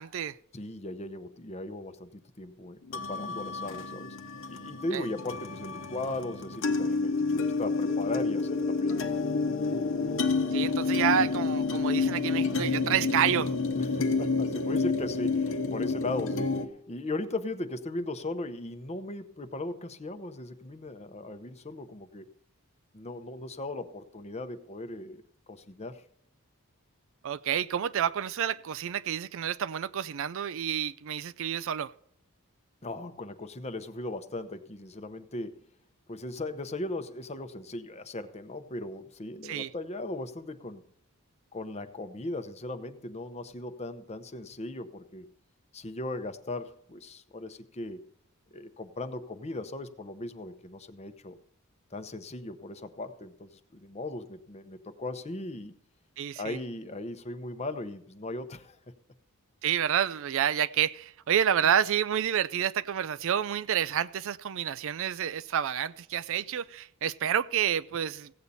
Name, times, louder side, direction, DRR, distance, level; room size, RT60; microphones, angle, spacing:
voice 1, 0.0-0.4 4.9-5.0 10.5-13.5 27.2-31.9 39.4-39.7 56.2-56.6 59.6-68.3, right 9 dB, 60° right, 0.4 m, -29 dB
voice 2, 0.5-4.2 4.5-9.1 13.7-16.5 16.9-22.3 22.9-26.0 32.8-35.6 36.1-40.9 41.5-45.3 45.7-48.0 48.5-51.4 51.9-55.7 56.4-58.8 61.6-61.7, left 2 dB, 30° left, 0.8 m, -38 dB
sound 1, 2.9-16.7, left 4 dB, 60° left, 1.0 m, -29 dB
16.0 x 8.4 x 4.1 m
head